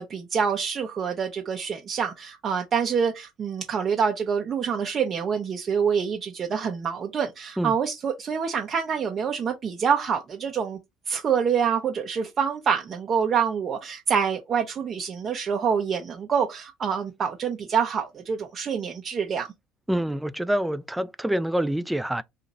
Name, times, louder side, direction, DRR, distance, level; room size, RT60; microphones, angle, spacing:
voice 1, 0.0-10.8 11.1-19.5, right 6 dB, 40° right, 0.6 m, -26 dB
voice 2, 19.9-22.2, right 1 dB, 5° right, 0.3 m, -26 dB
2.9 x 2.5 x 3.9 m
hypercardioid pair, 70°, 0 cm